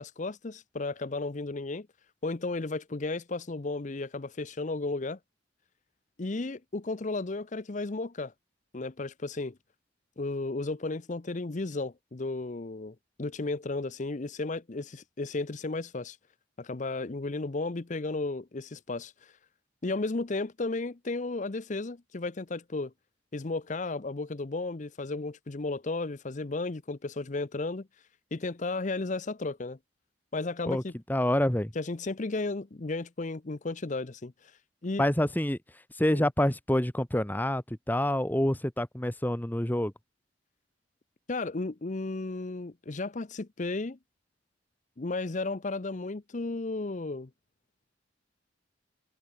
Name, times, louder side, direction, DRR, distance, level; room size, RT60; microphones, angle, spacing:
voice 1, 0.0-1.9 2.2-5.2 6.2-8.3 8.7-9.6 10.2-16.2 16.6-19.3 19.8-22.9 23.3-27.9 28.3-29.8 30.3-30.9 31.7-34.5 34.8-35.0 36.1-36.3 41.3-44.0 45.0-47.3, left 3 dB, 40° left, 0.7 m, -34 dB
voice 2, 31.1-31.7 35.0-35.6 36.0-39.9, left 1 dB, 10° left, 1.2 m, -27 dB
head